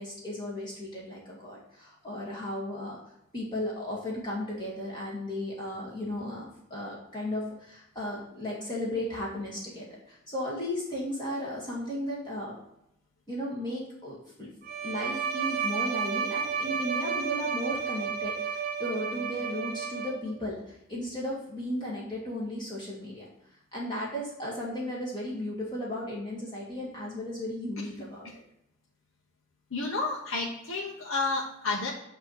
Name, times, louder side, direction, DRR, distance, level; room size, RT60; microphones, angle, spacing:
voice 1, 0.0-3.0 3.3-12.6 13.3-14.5 14.8-23.3 23.7-28.3, left 1 dB, 25° left, -5 dB, 1.6 m, -35 dB
Bowed string instrument, 14.6-20.4, right 6 dB, 50° right, 0.6 m, -32 dB
voice 2, 29.7-31.9, left 3 dB, 90° left, -3 dB, 1.0 m, -30 dB
8.3 x 3.0 x 6.2 m, 0.79 s
head